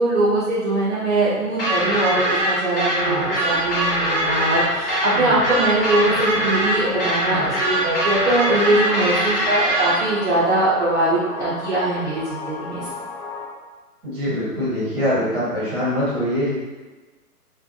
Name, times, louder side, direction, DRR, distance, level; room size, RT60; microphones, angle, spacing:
voice 1, 0.0-12.9, right 2 dB, 50° right, -8 dB, 0.5 m, -21 dB
sound 1, 1.6-9.9, right 1 dB, 35° left, 0.7 m, -22 dB
sound 2, 3.0-13.5, left 3 dB, 60° left, 1.0 m, -34 dB
voice 2, 14.0-16.5, equal, 15° right, -11 dB, 0.7 m, -23 dB
2.6 x 2.1 x 2.4 m, 1.3 s
figure-of-eight pair, 135°, 48 cm